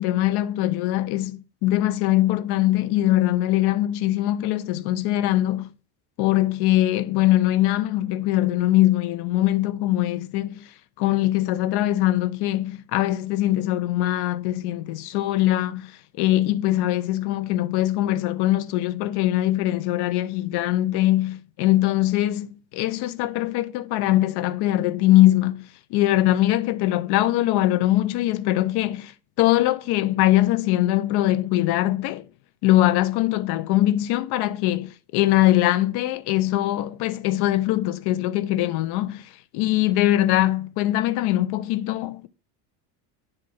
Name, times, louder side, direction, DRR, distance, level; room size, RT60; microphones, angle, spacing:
voice 1, 0.0-5.7 6.2-10.7 11.0-15.9 16.2-29.1 29.4-32.2 32.6-42.3, left 15 dB, 60° left, 0.7 m, -22 dB
7.6 x 2.6 x 5.7 m
supercardioid pair, 100°, 45 cm